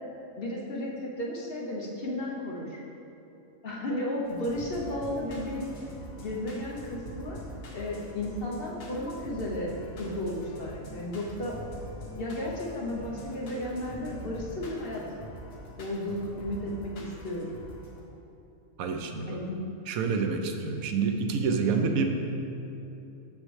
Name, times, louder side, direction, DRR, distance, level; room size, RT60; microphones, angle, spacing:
voice 1, 0.4-2.8 3.6-5.7 6.2-7.4 7.7-9.7 10.0-11.6 12.1-15.0 15.8-17.5 19.3-19.6, left 1 dB, 50° left, -3 dB, 0.9 m, -34 dB
sound 1, 4.2-18.0, equal, 75° left, 1.4 m, -44 dB
voice 2, 18.8-19.4 19.9-22.1, right 5 dB, 80° right, 5 dB, 1.0 m, -28 dB
6.9 x 6.6 x 3.2 m, 2.9 s
omnidirectional pair, 1.5 m